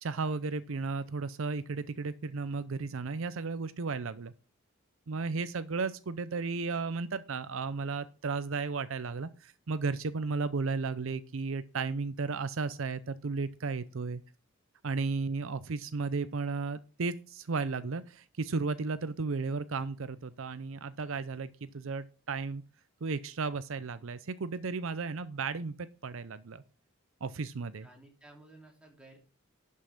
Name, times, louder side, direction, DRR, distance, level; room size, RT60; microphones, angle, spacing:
voice 1, 0.0-4.3 5.1-14.2 14.8-22.6 23.0-26.6 27.2-27.9, right 4 dB, 70° right, 14 dB, 0.6 m, -34 dB
voice 2, 27.8-29.2, right 2 dB, 5° right, 1 dB, 2.9 m, -55 dB
11.5 x 5.5 x 5.9 m, 0.36 s
head